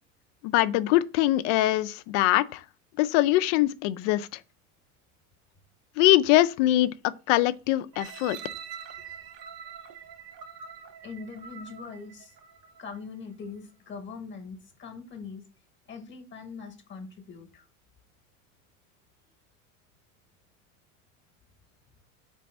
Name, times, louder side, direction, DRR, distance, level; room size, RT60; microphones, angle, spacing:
voice 1, 0.4-2.6 3.0-4.3 6.0-6.9 7.3-8.4, left 15 dB, 65° left, 0.5 m, -22 dB
sound 1, 7.9-12.9 13.4-13.5, right 7 dB, 60° right, 0.8 m, -44 dB
voice 2, 11.0-12.3 12.8-15.5 15.9-17.7, left 5 dB, 30° left, 1.0 m, -42 dB
4.2 x 3.4 x 3.3 m
supercardioid pair, 100°, 40 cm